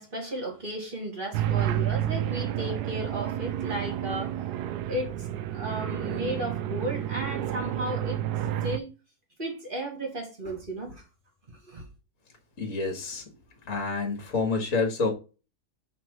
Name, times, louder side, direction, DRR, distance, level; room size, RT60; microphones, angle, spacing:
voice 1, 0.0-4.3 4.9-5.1 5.5-8.2 8.6-8.9 9.4-11.0 11.7-11.8, right 1 dB, 30° right, 2.1 m, -34 dB
sound 1, 1.3-8.8, right 11 dB, 85° right, 1.2 m, -30 dB
voice 2, 12.6-13.2 13.6-15.1, left 4 dB, 55° left, 2.0 m, -28 dB
6.0 x 3.7 x 6.1 m
omnidirectional pair, 1.7 m